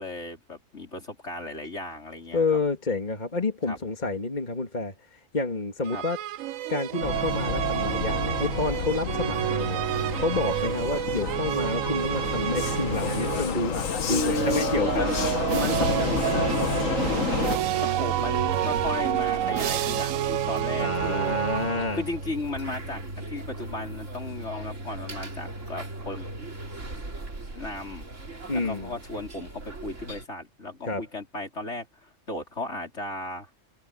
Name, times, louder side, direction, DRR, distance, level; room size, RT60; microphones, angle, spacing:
voice 1, 0.0-2.6 3.7-3.8 5.9-6.0 14.1-15.2 15.5-16.8 17.8-21.4 21.9-26.3 27.5-28.1 28.5-33.5, left 2 dB, 60° left, 4.8 m, -35 dB
voice 2, 2.3-6.2 6.7-9.8 10.2-15.1 15.5-15.8 20.8-22.0 28.5-28.9 30.8-31.0, left 3 dB, 35° left, 2.5 m, -29 dB
sound 1, 5.8-13.7 14.3-22.2, right 12 dB, 90° right, 1.1 m, -29 dB
Vehicle, 7.0-17.6, left 6 dB, 90° left, 1.7 m, -30 dB
sound 2, 14.9-30.3, right 2 dB, 75° right, 3.4 m, -38 dB
omnidirectional pair, 1.3 m